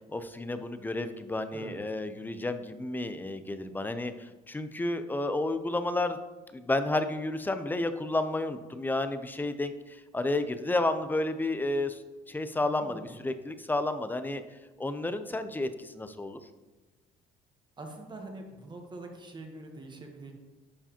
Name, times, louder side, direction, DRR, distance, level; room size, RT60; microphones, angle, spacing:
voice 1, 0.1-6.2 6.5-12.0 12.3-14.4 14.8-16.4, left 2 dB, 10° left, 10 dB, 0.5 m, -31 dB
voice 2, 12.6-13.2 17.8-20.3, right 2 dB, 25° right, 3 dB, 1.1 m, -44 dB
11.0 x 4.7 x 2.9 m, 1.2 s
cardioid pair, 110°, 17 cm